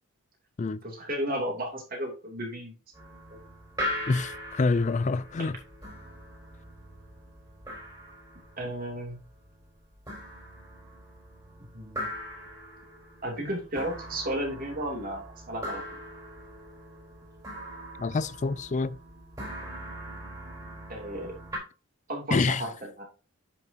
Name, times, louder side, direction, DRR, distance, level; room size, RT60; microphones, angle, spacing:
voice 1, 0.8-2.7 3.3-3.4 8.6-9.2 11.7-12.1 13.2-16.0 20.9-21.3 22.1-22.7 23.0-23.1, right 1 dB, 40° right, 2.9 m, -33 dB
sound 1, 2.9-21.6, equal, 15° right, 3.8 m, -41 dB
voice 2, 4.1-5.6 18.0-19.0 22.3-22.6, left 3 dB, 35° left, 0.4 m, -27 dB
10.5 x 6.3 x 2.8 m
head